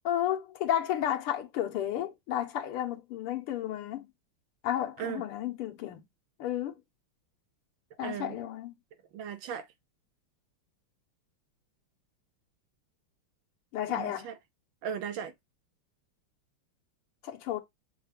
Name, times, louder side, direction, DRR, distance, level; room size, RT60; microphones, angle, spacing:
voice 1, 0.0-4.1 4.6-6.0 6.4-6.8 8.0-8.7 13.7-14.3 17.2-17.6, left 11 dB, 85° left, 1.9 m, -32 dB
voice 2, 8.0-8.4 9.1-9.7 13.9-14.3 14.8-15.3, right 8 dB, 70° right, 1.3 m, -37 dB
6.7 x 2.3 x 3.4 m
omnidirectional pair, 2.4 m